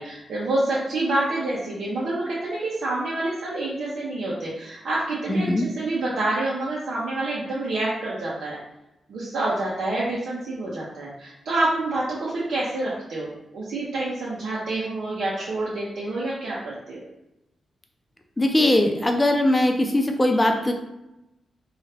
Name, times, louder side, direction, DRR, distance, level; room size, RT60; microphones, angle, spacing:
voice 1, 0.0-8.6 9.1-17.0, right 2 dB, 80° right, -7 dB, 0.6 m, -27 dB
voice 2, 5.3-5.6 18.4-20.7, left 1 dB, 20° left, 4 dB, 0.4 m, -20 dB
2.7 x 2.3 x 3.2 m, 0.91 s
cardioid pair, 100°, 0 cm